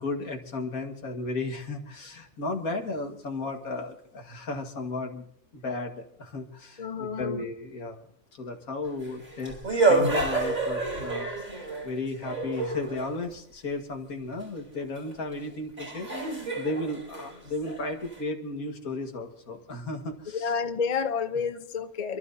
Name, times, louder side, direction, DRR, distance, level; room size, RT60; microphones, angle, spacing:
voice 1, 0.0-5.2 5.5-8.1 8.4-9.6 9.9-11.5 11.8-20.6, left 2 dB, 85° left, 3 dB, 2.2 m, -34 dB
voice 2, 6.8-7.4 20.3-22.2, left 6 dB, 35° left, 8 dB, 0.8 m, -30 dB
Record Scratch, 8.9-13.2 15.1-15.2 15.8-18.2, right 3 dB, 70° right, 4.3 m, -28 dB
28.5 x 13.0 x 2.7 m, 0.68 s
omnidirectional pair, 1.5 m